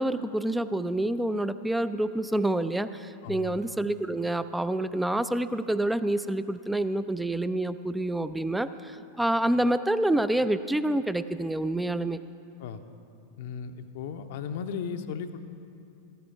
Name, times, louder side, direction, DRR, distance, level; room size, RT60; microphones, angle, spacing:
voice 1, 0.0-12.2, right 1 dB, 5° right, 13 dB, 0.3 m, -27 dB
voice 2, 3.2-3.6 12.6-12.8 13.4-15.4, left 6 dB, 50° left, 8 dB, 0.6 m, -36 dB
16.0 x 14.0 x 3.4 m, 2.6 s
figure-of-eight pair, 90°, 0 cm